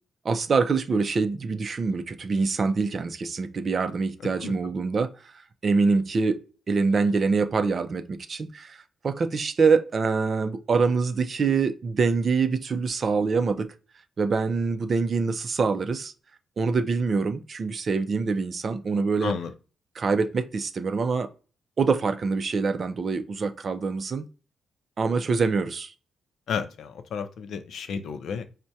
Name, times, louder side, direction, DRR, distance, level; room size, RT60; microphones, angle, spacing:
voice 1, 0.2-5.3 5.6-6.4 6.7-13.7 14.2-16.1 16.6-19.3 20.0-21.3 21.8-24.2 25.0-25.9, right 4 dB, 45° right, 0.4 m, -25 dB
voice 2, 19.2-19.5 26.5-28.4, left 6 dB, 70° left, 0.5 m, -32 dB
4.5 x 2.1 x 2.6 m
cardioid pair, 100°, 0 cm